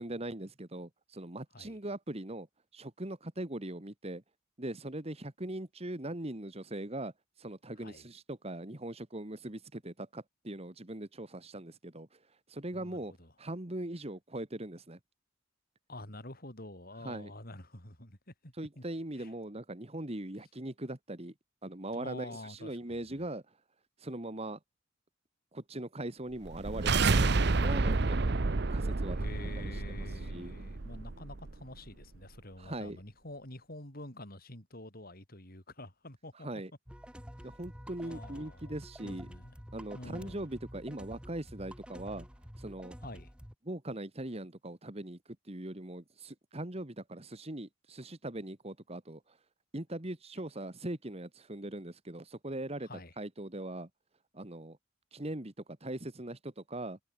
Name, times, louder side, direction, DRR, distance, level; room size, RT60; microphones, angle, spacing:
voice 1, 0.0-2.5 2.7-4.2 4.6-7.1 7.4-12.1 12.5-13.1 13.4-15.0 17.0-17.3 18.6-21.3 21.6-23.4 24.0-24.6 25.5-28.3 28.7-30.5 32.6-33.0 36.4-36.7 37.4-39.3 39.7-42.3 42.6-43.0 43.6-45.2 45.5-49.4 49.7-52.9 53.2-53.9 54.3-54.8 55.1-57.0, right 1 dB, 30° right, 1.8 m, -40 dB
voice 2, 12.7-13.3 15.9-18.8 19.2-19.3 21.9-23.3 29.1-36.5 37.4-37.5 38.0-38.8 39.0-39.5 39.9-40.5 43.0-43.3 52.8-53.1, left 1 dB, 45° left, 6.3 m, -48 dB
sound 1, 26.4-31.6, right 3 dB, 55° right, 0.8 m, -30 dB
sound 2, 36.9-43.5, equal, 5° right, 6.4 m, -49 dB
head